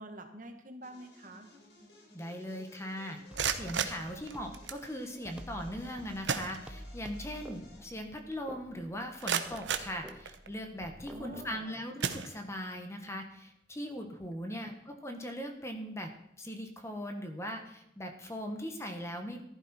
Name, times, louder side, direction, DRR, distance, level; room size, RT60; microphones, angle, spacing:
voice 1, 0.0-1.5 11.1-11.8 14.5-14.8, right 1 dB, 45° right, 6 dB, 1.7 m, -48 dB
sound 1, 0.8-7.9, left 1 dB, 70° left, 4.4 m, -58 dB
voice 2, 2.1-3.2 3.5-16.1 16.4-19.4, equal, 15° left, 4 dB, 1.5 m, -40 dB
sound 2, 3.2-4.9 5.8-5.9 6.2-7.1 7.5-7.6 8.2-8.3 8.8-10.7 11.3-11.5 12.0-12.8, right 7 dB, 85° right, 1.0 m, -35 dB
sound 3, 3.3-11.6, equal, 5° right, 0.7 m, -50 dB
14.5 x 12.0 x 4.5 m, 0.80 s
head